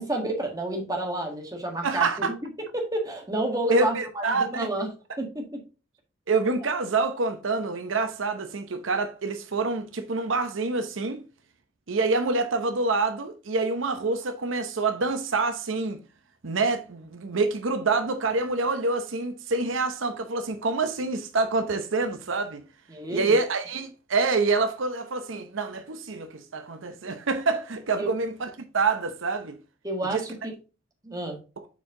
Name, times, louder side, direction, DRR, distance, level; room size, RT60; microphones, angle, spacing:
voice 1, 0.0-2.3 2.7-4.9 5.2-5.6 22.9-23.4 28.0-28.1 29.8-30.5 31.0-31.4, right 1 dB, 20° right, 1.6 m, -30 dB
voice 2, 1.8-2.3 3.7-4.7 6.3-11.2 11.9-16.0 16.4-22.6 23.1-29.6 30.0-30.2 31.6-31.7, right 3 dB, 80° right, 0.8 m, -26 dB
7.1 x 4.6 x 3.7 m
head